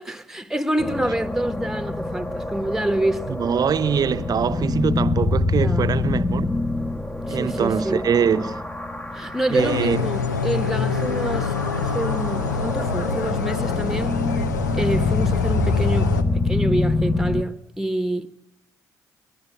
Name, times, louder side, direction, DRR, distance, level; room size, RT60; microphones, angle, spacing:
voice 1, 0.0-3.4 5.5-6.0 7.3-8.1 9.1-14.2 14.8-18.3, right 1 dB, 5° right, 1.4 m, -27 dB
sound 1, 0.8-10.2 10.5-17.4, left 3 dB, 15° left, 1.4 m, -26 dB
voice 2, 3.3-6.5 7.3-8.6 9.5-10.0, right 7 dB, 45° right, 0.9 m, -23 dB
sound 2, 9.6-16.2, left 5 dB, 80° left, 0.9 m, -26 dB
29.5 x 12.0 x 8.4 m
figure-of-eight pair, 40°, 9 cm